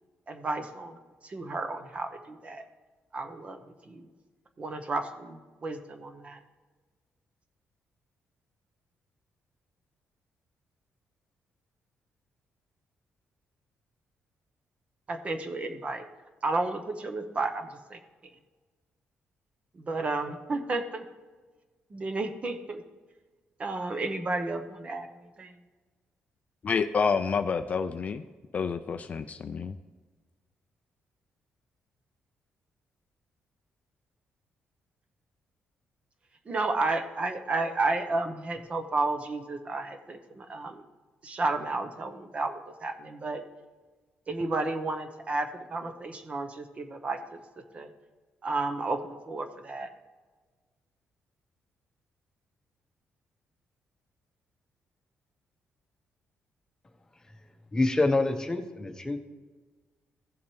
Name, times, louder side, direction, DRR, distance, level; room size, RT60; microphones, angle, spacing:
voice 1, 0.3-1.0 1.2-2.7 3.1-3.6 3.9-4.1 4.6-6.4 15.1-16.1 16.4-18.0 19.7-21.0 21.9-22.8 23.6-25.5 36.5-40.8 41.2-43.4 44.3-47.2 47.7-47.9 48.4-49.9, right 3 dB, 30° right, 7 dB, 0.9 m, -32 dB
voice 2, 26.6-28.2 28.5-29.8, left 5 dB, 35° left, 9 dB, 0.4 m, -28 dB
voice 3, 57.7-59.2, left 2 dB, 15° left, 5 dB, 0.8 m, -26 dB
15.5 x 7.2 x 3.2 m, 1.4 s
cardioid pair, 135°, 4 cm